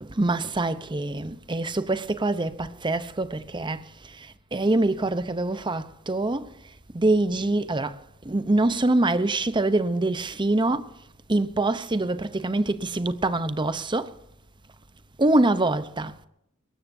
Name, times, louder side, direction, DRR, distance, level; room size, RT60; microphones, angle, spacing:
voice 1, 0.0-10.9 11.3-14.2 15.2-16.3, right 2 dB, 20° right, 0.8 m, -25 dB
21.0 x 18.0 x 2.7 m
head